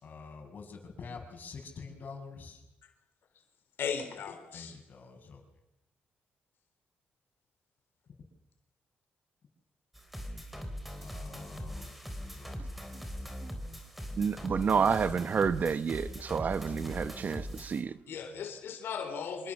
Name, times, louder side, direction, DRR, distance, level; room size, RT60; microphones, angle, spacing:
voice 1, 0.0-2.6 4.5-5.4 11.0-12.9, left 4 dB, 50° left, 7.0 m, -47 dB
voice 2, 3.8-4.8 18.1-19.5, left 6 dB, 75° left, 3.8 m, -37 dB
sound 1, 9.9-17.8, equal, 5° right, 3.8 m, -41 dB
voice 3, 14.2-18.0, right 6 dB, 45° right, 0.9 m, -29 dB
26.5 x 24.5 x 7.2 m
cardioid pair, 120°, 4 cm